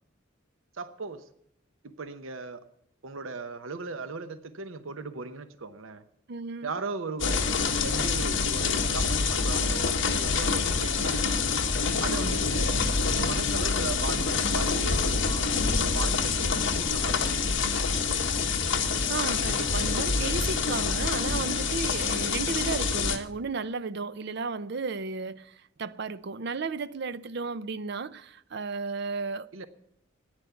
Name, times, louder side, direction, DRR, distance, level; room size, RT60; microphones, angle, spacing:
voice 1, 0.7-1.3 1.8-2.6 3.0-6.0 6.6-7.4 7.8-11.3 12.0-12.8 13.1-15.5 15.8-17.5 29.5-29.7, right 3 dB, 80° right, 0.8 m, -37 dB
voice 2, 6.3-6.7 12.1-12.4 19.1-29.6, right 4 dB, 55° right, 0.5 m, -34 dB
sound 1, 7.2-23.2, left 5 dB, 65° left, 1.5 m, -26 dB
14.0 x 9.8 x 7.0 m
head